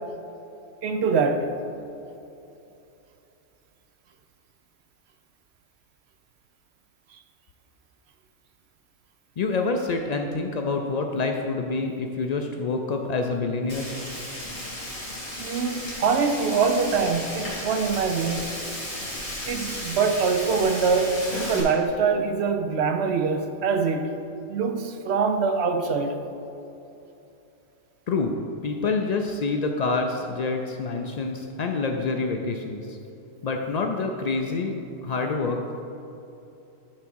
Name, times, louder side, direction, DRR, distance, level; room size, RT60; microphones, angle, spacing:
voice 1, 0.8-1.5 15.4-18.5 19.5-24.1 24.5-26.2, right 5 dB, 65° right, 6 dB, 0.8 m, -24 dB
voice 2, 9.4-13.9 28.1-28.3 28.6-33.0 33.4-34.8 35.0-35.8, left 3 dB, 85° left, 3 dB, 0.3 m, -27 dB
Frying (food), 13.7-21.6, left 1 dB, 35° left, 2.2 m, -34 dB
10.5 x 3.6 x 6.1 m, 2.8 s
omnidirectional pair, 1.3 m